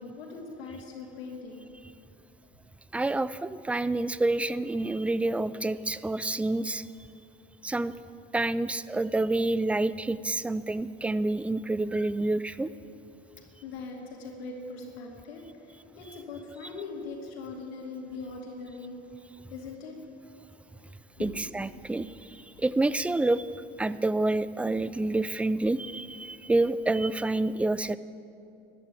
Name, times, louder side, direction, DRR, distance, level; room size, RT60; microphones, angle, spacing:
voice 1, 0.0-1.7 13.6-18.9 19.5-20.0 21.2-21.3, left 4 dB, 80° left, 0 dB, 2.4 m, -41 dB
voice 2, 2.9-6.8 7.6-7.9 8.3-12.7 21.2-23.5 23.8-28.0, right 2 dB, 5° right, 16 dB, 0.3 m, -28 dB
12.5 x 11.0 x 8.4 m, 2.7 s
hypercardioid pair, 85°, 30 cm